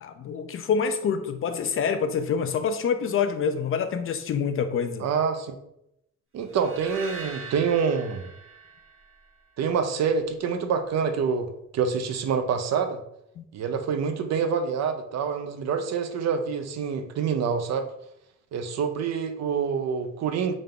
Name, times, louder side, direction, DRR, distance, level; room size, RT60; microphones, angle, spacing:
voice 1, 0.0-5.0 13.4-13.5, left 6 dB, 45° left, 9 dB, 0.4 m, -26 dB
voice 2, 5.0-5.5 6.3-8.3 9.6-13.0 13.5-17.9 18.5-20.5, right 6 dB, 60° right, 7 dB, 0.5 m, -26 dB
sound 1, 6.5-9.7, right 4 dB, 45° right, 1.1 m, -42 dB
3.6 x 2.2 x 3.6 m, 0.80 s
cardioid pair, 90°, 30 cm